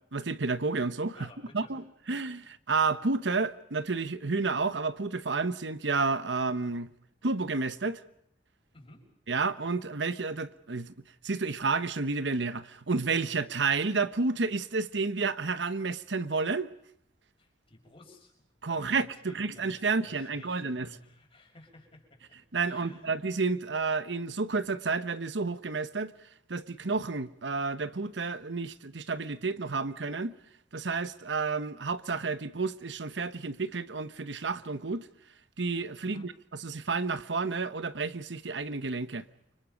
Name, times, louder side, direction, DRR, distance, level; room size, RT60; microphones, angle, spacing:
voice 1, 0.1-1.3 1.5-6.9 7.2-8.0 9.3-10.9 11.2-16.7 18.6-20.9 22.5-26.1 26.5-30.3 30.7-35.1 35.6-39.2, right 4 dB, 80° right, 1.0 m, -30 dB
voice 2, 1.1-1.7 8.7-9.1 17.4-18.3 18.7-23.2 36.0-36.3, left 2 dB, 35° left, 6.1 m, -55 dB
29.5 x 25.0 x 5.3 m
head